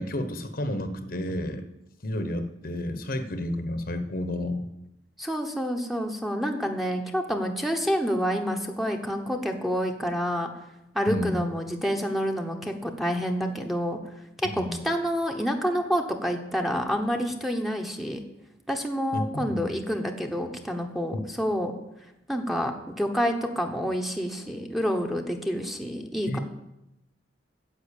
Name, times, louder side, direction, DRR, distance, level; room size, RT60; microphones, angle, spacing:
voice 1, 0.0-1.6 2.0-4.7 11.1-11.4 14.5-14.8 19.1-19.7 21.1-21.2 26.3-26.4, left 1 dB, 50° left, 9 dB, 1.1 m, -31 dB
voice 2, 5.2-10.5 10.9-14.0 14.6-18.2 18.7-21.7 22.3-22.7 23.0-26.4, equal, ahead, 2 dB, 1.1 m, -28 dB
9.9 x 7.8 x 8.4 m, 0.88 s
head